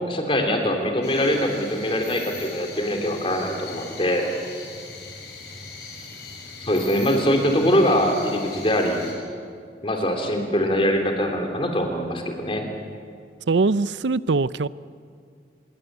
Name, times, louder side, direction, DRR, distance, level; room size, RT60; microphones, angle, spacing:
voice 1, 0.1-4.3 6.6-9.0 9.8-12.6, equal, 30° left, 3.4 m, -23 dB
sound 1, 1.0-9.1, left 4 dB, 70° left, 7.0 m, -40 dB
voice 2, 13.5-14.7, right 3 dB, 90° right, 0.6 m, -21 dB
25.5 x 22.5 x 8.1 m
head